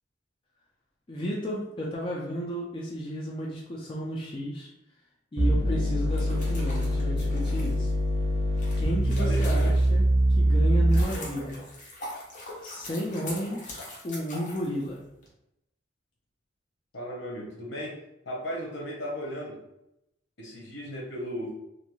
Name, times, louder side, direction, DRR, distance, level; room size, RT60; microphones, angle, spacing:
voice 1, 1.1-4.7 5.3-7.9 8.8-11.6 12.6-15.0, equal, 25° left, -3 dB, 0.4 m, -33 dB
sound 1, 5.4-11.3, right 1 dB, 80° right, 0.5 m, -24 dB
sound 2, 6.0-10.1 10.6-15.3, left 1 dB, 40° left, 0.7 m, -42 dB
voice 2, 9.2-9.7 16.9-18.0 18.2-19.6 20.4-21.5, equal, 70° left, -3 dB, 0.8 m, -36 dB
2.5 x 2.2 x 3.0 m, 0.85 s
head